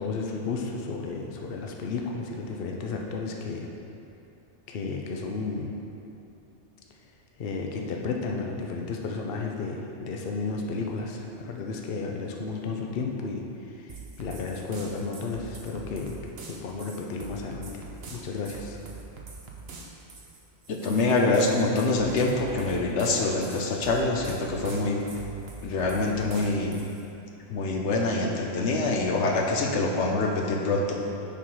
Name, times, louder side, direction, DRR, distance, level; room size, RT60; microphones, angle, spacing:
voice 1, 0.0-3.7 4.7-5.7 7.4-16.2 16.5-17.8 18.1-18.8, left 4 dB, 60° left, 1 dB, 0.8 m, -33 dB
sound 1, 13.9-27.1, right 4 dB, 60° right, 1.1 m, -44 dB
voice 2, 20.7-25.0 25.6-26.7 27.5-31.0, left 2 dB, 80° left, 1 dB, 1.1 m, -25 dB
6.8 x 5.6 x 4.7 m, 2.8 s
omnidirectional pair, 1.2 m